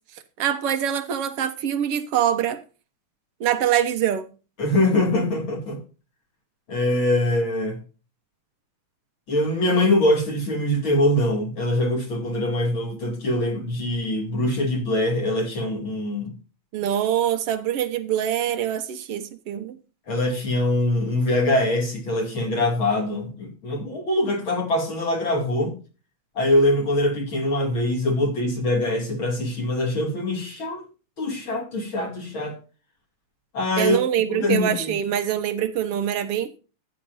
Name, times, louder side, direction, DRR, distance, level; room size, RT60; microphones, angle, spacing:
voice 1, 0.4-2.6 3.4-4.3 16.7-19.8 33.8-36.6, right 10 dB, 60° right, 1.8 m, -24 dB
voice 2, 4.6-5.8 6.7-7.8 9.3-16.3 20.1-25.7 26.3-30.8 31.2-32.6 33.5-34.0 34.3-34.9, left 1 dB, 40° left, 3.4 m, -23 dB
14.5 x 9.7 x 2.7 m
omnidirectional pair, 3.5 m